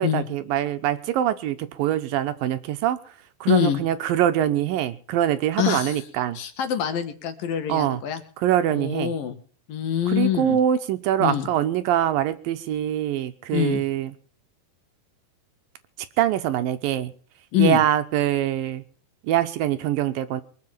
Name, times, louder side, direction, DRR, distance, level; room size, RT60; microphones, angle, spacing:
voice 1, 0.0-3.0 3.4-6.4 7.7-8.0 8.4-9.1 10.1-14.1 16.2-17.1 17.6-18.8 19.2-20.4, right 11 dB, 75° right, 11 dB, 2.3 m, -24 dB
voice 2, 3.5-3.8 5.6-6.0 6.3-8.2 8.7-9.4 9.7-10.6 11.2-11.5 13.5-13.8 17.5-17.8, left 10 dB, 65° left, 9 dB, 2.9 m, -24 dB
23.0 x 7.7 x 7.4 m, 0.44 s
omnidirectional pair, 4.7 m